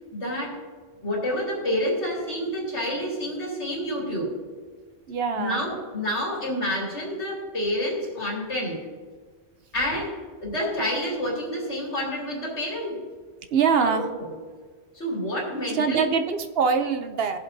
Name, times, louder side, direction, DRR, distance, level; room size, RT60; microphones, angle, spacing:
voice 1, 0.1-0.6 1.0-4.4 5.4-8.8 9.7-13.0 13.8-14.3 14.9-16.1, equal, 90° left, -3 dB, 3.2 m, -28 dB
voice 2, 5.1-5.6 13.5-14.1 15.7-17.4, right 6 dB, 65° right, 8 dB, 0.9 m, -23 dB
21.0 x 7.5 x 2.7 m, 1.5 s
omnidirectional pair, 1.1 m